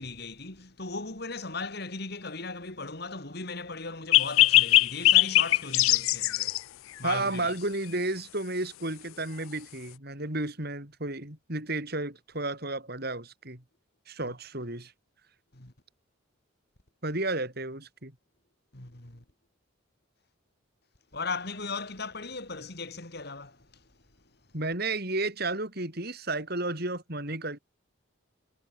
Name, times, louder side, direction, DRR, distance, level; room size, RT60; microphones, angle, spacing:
voice 1, 0.0-6.6 7.0-7.5 14.2-14.3 15.5-15.7 18.7-19.2 21.1-23.8, left 3 dB, 50° left, 3.2 m, -37 dB
sound 1, 4.1-6.6, left 17 dB, 80° left, 0.4 m, -21 dB
voice 2, 7.0-13.6 14.1-14.9 17.0-18.1 24.5-27.6, right 2 dB, 50° right, 6.7 m, -32 dB
head